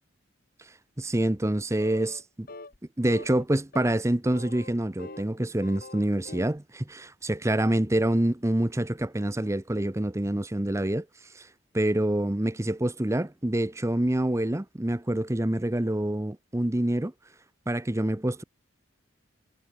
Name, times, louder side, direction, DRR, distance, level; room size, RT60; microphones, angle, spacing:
voice 1, 1.0-2.5 3.0-11.1 11.3-11.5 11.7-17.1 17.7-18.4, right 1 dB, 15° right, 0.7 m, -26 dB
sound 1, 1.8-2.2 2.5-2.8 3.1-3.4 3.7-4.0 4.3-5.3 5.6-6.6, left 3 dB, 45° left, 1.5 m, -44 dB
head